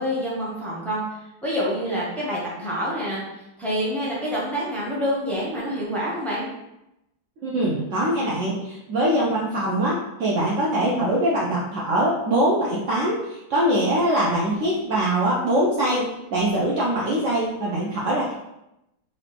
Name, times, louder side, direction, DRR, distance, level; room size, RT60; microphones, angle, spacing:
voice 1, 0.0-6.5, equal, ahead, -7 dB, 0.5 m, -27 dB
voice 2, 7.4-18.3, right 1 dB, 80° right, -5 dB, 0.6 m, -23 dB
4.1 x 2.7 x 3.4 m, 0.89 s
omnidirectional pair, 2.1 m